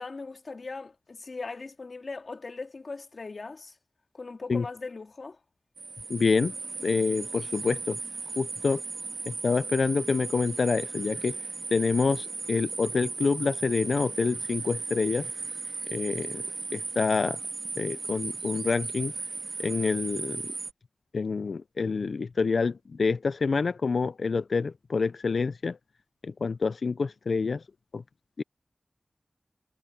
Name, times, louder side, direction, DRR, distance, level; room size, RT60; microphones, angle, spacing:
voice 1, 0.0-3.7 4.1-5.4, left 3 dB, 65° left, 2.4 m, -39 dB
sound 1, 5.8-20.7, right 4 dB, 85° right, 2.7 m, -36 dB
voice 2, 6.1-6.5 6.8-8.0 8.4-8.8 9.3-11.4 11.7-15.3 15.9-16.4 16.7-17.4 17.8-19.1 19.6-20.4 21.1-25.8 26.2-27.6 27.9-28.0 28.4-28.5, left 4 dB, 80° left, 0.4 m, -27 dB
wide cardioid pair, 55°, 0 cm